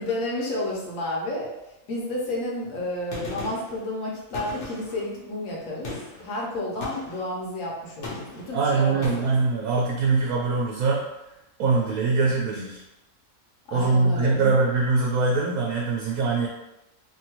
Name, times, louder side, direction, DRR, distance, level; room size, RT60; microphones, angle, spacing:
voice 1, 0.0-1.5 1.9-9.3 13.7-14.5, left 1 dB, 70° left, -3 dB, 1.2 m, -31 dB
Gunshot gunfire, 3.1-3.8 4.3-5.1 5.8-6.2 6.8-7.3 8.0-8.5 9.0-9.4, left 2 dB, 45° left, 0.8 m, -37 dB
voice 2, 8.5-11.0 11.6-12.8 13.7-16.5, right 3 dB, 80° right, -2 dB, 1.0 m, -23 dB
2.8 x 2.6 x 2.9 m, 0.92 s
omnidirectional pair, 1.5 m